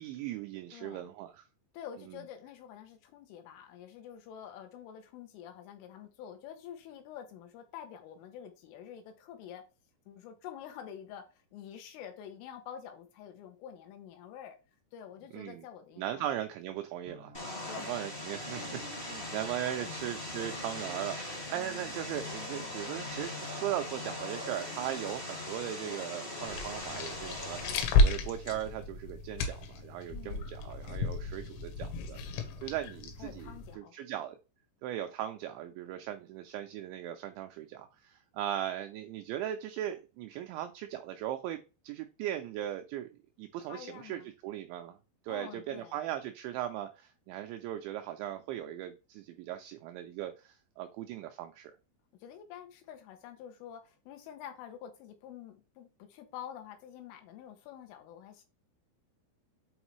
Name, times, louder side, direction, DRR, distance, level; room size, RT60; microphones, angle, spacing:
voice 1, 0.0-1.5 15.3-15.7 16.0-17.4 17.7-34.4 34.8-43.1 43.4-45.0 45.2-51.7, right 12 dB, 90° right, 2.6 m, -38 dB
voice 2, 0.7-1.1 1.7-9.6 10.1-14.6 14.9-16.3 17.5-17.9 18.6-18.7 19.2-19.3 19.8-19.9 30.1-30.5 33.2-33.9 43.7-44.3 45.3-46.0 52.2-58.4, left 9 dB, 90° left, 3.5 m, -47 dB
sound 1, 17.0-25.2, right 2 dB, 65° right, 0.9 m, -53 dB
Vehicle, 17.3-27.8, left 1 dB, 40° left, 0.7 m, -40 dB
sound 2, 26.4-33.7, left 2 dB, 75° left, 3.1 m, -32 dB
7.9 x 4.0 x 3.1 m
omnidirectional pair, 5.7 m